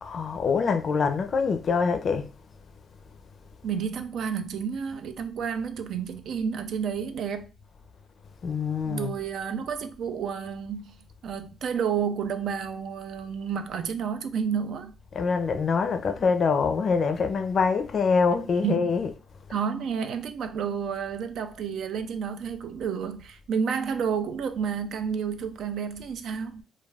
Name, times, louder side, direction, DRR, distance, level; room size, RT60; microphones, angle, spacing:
voice 1, 0.0-2.3 8.4-9.1 15.1-19.2, left 5 dB, 50° left, 0.4 m, -25 dB
voice 2, 3.6-7.5 8.8-11.0 11.2-14.9 18.6-18.8 19.5-26.6, right 7 dB, 70° right, 0.3 m, -30 dB
2.3 x 2.2 x 3.2 m
cardioid pair, 90°, 0 cm